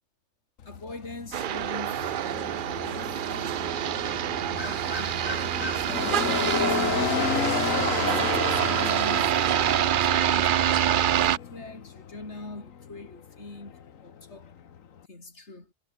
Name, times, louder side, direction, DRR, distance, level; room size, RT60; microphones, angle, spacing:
sound 1, 0.6-15.1, left 8 dB, 70° left, 1.6 m, -33 dB
voice 1, 0.6-7.4 8.0-10.8 11.1-14.5 15.1-15.7, left 2 dB, 50° left, 4.8 m, -44 dB
sound 2, 1.3-11.4, right 11 dB, 75° right, 0.4 m, -26 dB
sound 3, 4.6-9.9, left 1 dB, 25° left, 4.1 m, -43 dB
omnidirectional pair, 1.5 m